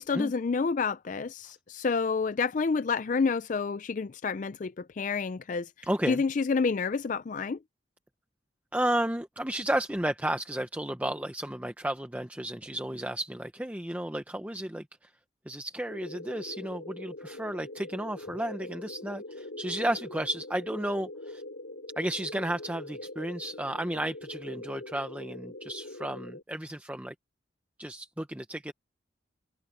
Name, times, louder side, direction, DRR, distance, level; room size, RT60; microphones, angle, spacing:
voice 1, 0.0-5.7 6.1-7.6, left 4 dB, 40° left, 0.4 m, -29 dB
voice 2, 5.8-6.2 8.7-15.1 15.5-21.4 22.0-27.1 27.8-28.7, right 1 dB, 10° right, 0.8 m, -33 dB
sound 1, 15.9-26.4, left 2 dB, 75° left, 4.3 m, -43 dB
head